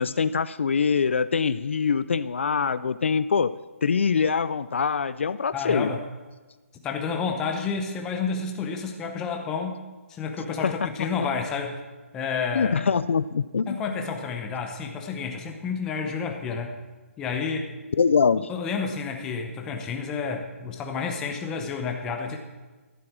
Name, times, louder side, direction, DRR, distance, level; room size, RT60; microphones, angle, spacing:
voice 1, 0.0-3.5 3.8-5.9 10.6-11.1 12.5-13.8 18.0-18.5, left 6 dB, 55° left, 15 dB, 0.4 m, -24 dB
voice 2, 5.5-6.0 6.8-9.8 10.1-11.8 12.1-12.7 13.7-16.7 17.2-17.7 18.5-22.4, left 5 dB, 10° left, 3 dB, 0.7 m, -30 dB
13.5 x 7.6 x 6.1 m, 1.3 s
hypercardioid pair, 175°, 8 cm